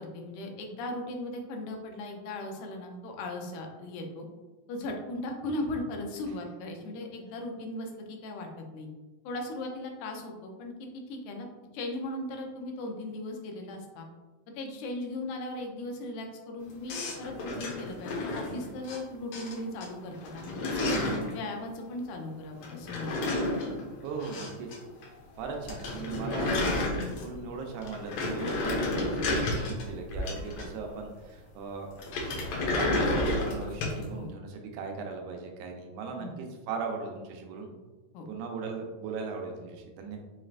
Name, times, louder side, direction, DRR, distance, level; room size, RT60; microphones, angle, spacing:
voice 1, 0.0-4.3 4.7-8.9 9.3-11.5 11.7-14.1 14.5-21.0 21.3-23.3 34.1-34.3 36.2-36.3 38.1-38.3, left 1 dB, 90° left, 2 dB, 2.2 m, -38 dB
sound 1, 16.9-19.0 19.3-19.9 20.1-21.3 22.6-24.8 25.0-25.1 25.4-25.5 25.7-27.4 27.8-30.9 32.0-34.0, left 2 dB, 75° left, 1.9 m, -31 dB
voice 2, 24.0-24.7 25.4-31.9 32.7-37.7 38.3-40.2, right 4 dB, 85° right, 2 dB, 2.2 m, -38 dB
5.7 x 3.1 x 2.5 m, 1.2 s
omnidirectional pair, 3.4 m